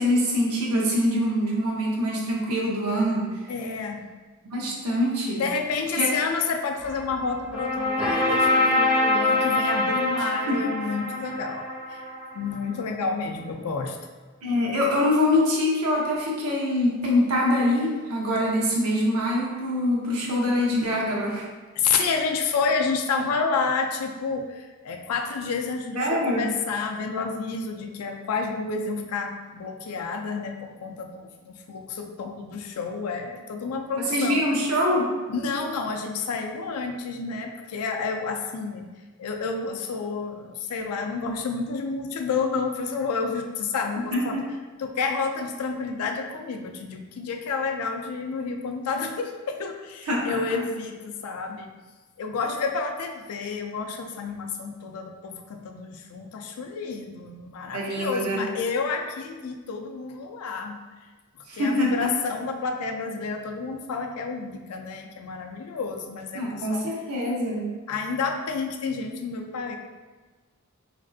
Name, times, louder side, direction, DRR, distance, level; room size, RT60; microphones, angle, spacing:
voice 1, 0.0-3.3 4.5-5.4 5.9-6.1 10.5-10.6 14.4-21.5 21.9-22.0 26.0-26.5 34.0-35.1 44.1-44.4 50.1-50.6 57.7-58.4 61.5-62.1 66.3-67.7, left 1 dB, 85° right, -3 dB, 0.7 m, -24 dB
voice 2, 3.5-4.0 5.4-12.0 12.3-14.0 21.8-34.4 35.3-38.9 39.2-44.4 44.8-51.7 52.2-60.8 61.6-66.9 67.9-69.8, left 4 dB, 85° left, 4 dB, 0.4 m, -30 dB
sound 1, 6.8-12.7, left 2 dB, 5° right, 0.4 m, -25 dB
3.1 x 2.5 x 2.5 m, 1.3 s
head